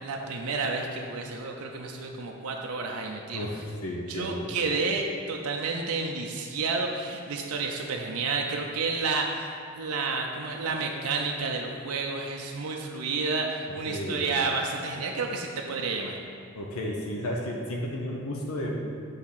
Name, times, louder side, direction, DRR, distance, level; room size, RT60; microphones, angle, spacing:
voice 1, 0.0-3.5 4.1-16.1, right 4 dB, 85° right, 1 dB, 0.6 m, -30 dB
voice 2, 3.3-4.5 13.8-14.3 16.5-18.7, left 1 dB, 70° left, -1 dB, 0.7 m, -33 dB
6.6 x 3.5 x 5.7 m, 2.2 s
head